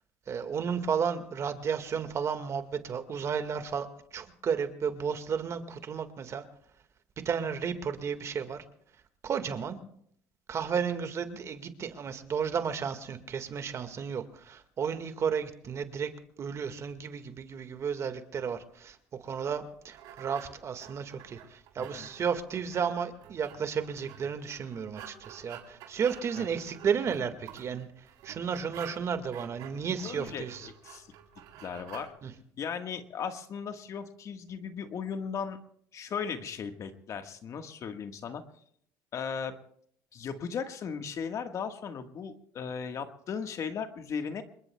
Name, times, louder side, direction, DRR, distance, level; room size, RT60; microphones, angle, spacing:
voice 1, 0.3-6.4 7.3-8.6 9.2-9.8 10.5-16.1 16.4-19.0 19.2-30.7 32.2-32.3, right 6 dB, 40° right, 8 dB, 1.8 m, -33 dB
sound 1, 19.4-32.1, right 9 dB, 75° right, 3.7 m, -50 dB
voice 2, 21.8-22.1 26.4-26.5 30.0-31.1 31.6-32.1 32.6-35.6 35.9-38.4 39.1-39.6 40.1-44.4, left 6 dB, 45° left, 7 dB, 1.5 m, -37 dB
27.5 x 21.5 x 2.3 m, 0.66 s
supercardioid pair, 90°, 7 cm